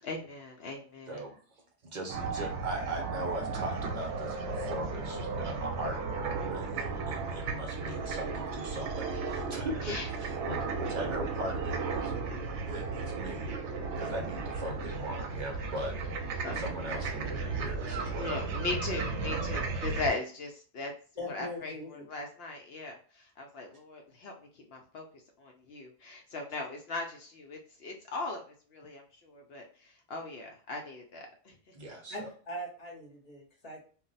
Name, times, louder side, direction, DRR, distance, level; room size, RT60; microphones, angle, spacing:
voice 1, 0.0-1.2 9.8-10.1 16.4-16.6 18.2-20.9 21.3-25.1 25.4-28.4 28.7-31.6, left 2 dB, 65° left, 2 dB, 0.7 m, -39 dB
voice 2, 1.1-1.4 1.8-12.2 12.6-13.5 14.0-15.9 16.2-18.4 31.7-32.3, right 1 dB, 45° right, 1 dB, 0.8 m, -40 dB
sound 1, 2.1-20.1, right 4 dB, 80° right, 0.9 m, -35 dB
voice 3, 21.2-22.1 32.1-33.8, left 1 dB, 35° left, -1 dB, 0.9 m, -41 dB
2.3 x 2.0 x 3.8 m, 0.42 s
omnidirectional pair, 1.2 m